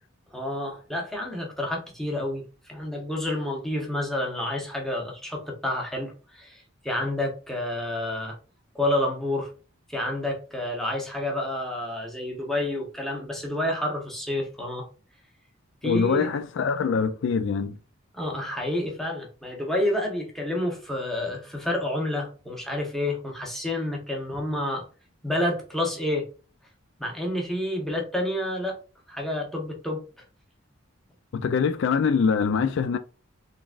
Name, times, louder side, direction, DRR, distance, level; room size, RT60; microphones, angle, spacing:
voice 1, 0.3-8.3 8.7-9.5 9.9-14.9 15.8-16.3 18.1-24.9 25.2-26.3 27.0-28.8 29.1-30.0, left 1 dB, ahead, 1.0 m, -29 dB
voice 2, 15.8-17.8 31.3-33.0, left 5 dB, 60° left, 0.3 m, -24 dB
3.9 x 3.5 x 2.4 m
head